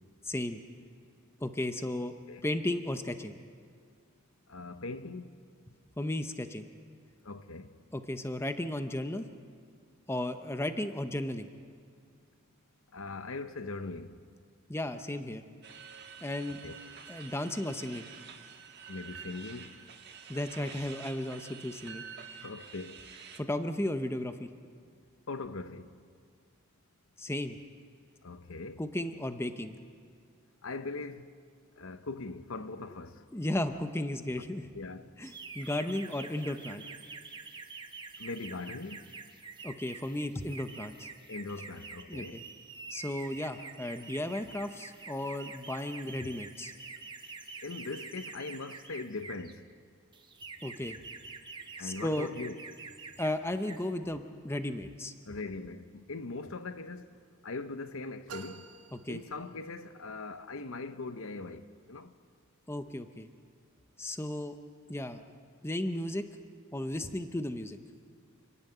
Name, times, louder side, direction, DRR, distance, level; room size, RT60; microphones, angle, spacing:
voice 1, 0.2-0.6 1.4-2.1 2.4-3.3 6.0-6.6 7.9-9.2 10.1-11.5 14.7-15.4 16.2-16.6 17.1-18.1 20.3-22.0 23.4-24.5 27.2-27.6 28.8-29.8 33.3-34.7 35.2-36.8 39.6-41.1 42.1-42.4 42.9-46.7 50.6-51.0 51.8-52.3 53.2-55.1 58.9-59.2 62.7-63.3 64.0-64.6 64.9-65.2 65.6-66.2 66.7-67.8, left 1 dB, 10° left, 0.7 m, -34 dB
voice 2, 4.5-5.3 7.2-7.7 12.9-14.2 16.6-16.8 18.9-19.8 22.4-23.3 25.3-26.0 28.2-28.8 30.6-31.3 31.8-33.2 34.7-35.1 35.6-35.7 38.2-39.0 41.3-42.4 47.6-49.7 51.8-52.6 55.3-57.1 57.4-58.7 59.1-62.1, left 3 dB, 65° left, 0.8 m, -41 dB
sound 1, 15.6-23.4, right 6 dB, 50° right, 1.4 m, -48 dB
sound 2, 35.2-49.5 50.1-53.3 53.6-53.9, right 4 dB, 20° right, 1.1 m, -47 dB
sound 3, 58.3-60.0, right 6 dB, 85° right, 1.6 m, -48 dB
29.0 x 11.0 x 9.2 m
head